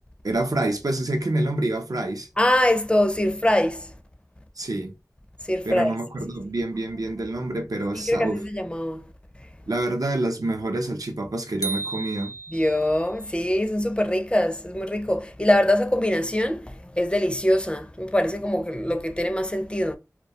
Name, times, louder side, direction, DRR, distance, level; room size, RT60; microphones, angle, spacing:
voice 1, 0.2-2.3 4.6-4.9 5.6-8.4 9.7-12.3, right 2 dB, 75° right, 0.5 m, -27 dB
voice 2, 2.4-3.9 5.4-5.9 8.1-9.1 9.4-9.5 12.5-20.0, left 1 dB, 15° left, 0.4 m, -23 dB
sound 1, 11.6-13.0, right 3 dB, 65° left, 0.6 m, -33 dB
2.3 x 2.1 x 2.7 m
wide cardioid pair, 45°, 6 cm